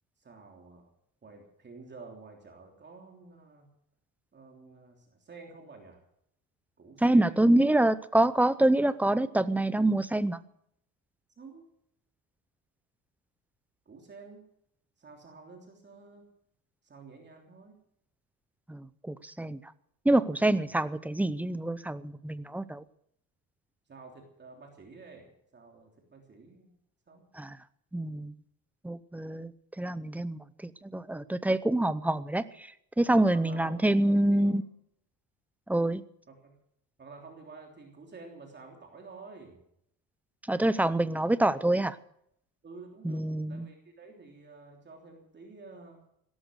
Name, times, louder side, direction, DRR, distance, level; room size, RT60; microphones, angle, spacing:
voice 1, 0.2-0.9 1.2-3.7 4.3-6.0 6.8-7.6 11.4-11.7 13.8-14.4 15.0-16.3 16.8-17.8 20.6-20.7 23.9-26.7 27.1-27.3 33.2-33.8 34.3-34.5 36.3-36.6 37.0-39.6 42.6-46.0, right 4 dB, 30° right, 2 dB, 3.2 m, -50 dB
voice 2, 7.0-10.4 18.7-19.6 20.0-22.8 27.4-27.6 27.9-28.3 28.8-29.5 29.8-32.7 33.0-34.6 35.7-36.0 40.5-42.0 43.0-43.7, right 1 dB, 5° right, 15 dB, 0.6 m, -26 dB
17.0 x 12.5 x 6.4 m, 0.72 s
cardioid pair, 135°, 37 cm